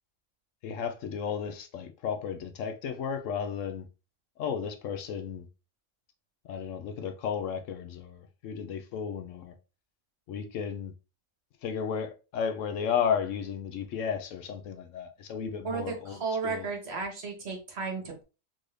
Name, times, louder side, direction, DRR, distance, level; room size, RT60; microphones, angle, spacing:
voice 1, 0.6-3.9 4.4-5.5 6.5-9.5 10.3-10.9 11.6-16.7, left 7 dB, 80° left, 0.9 m, -33 dB
voice 2, 15.6-18.2, right 4 dB, 55° right, 1.2 m, -34 dB
3.8 x 2.6 x 3.1 m
omnidirectional pair, 1.3 m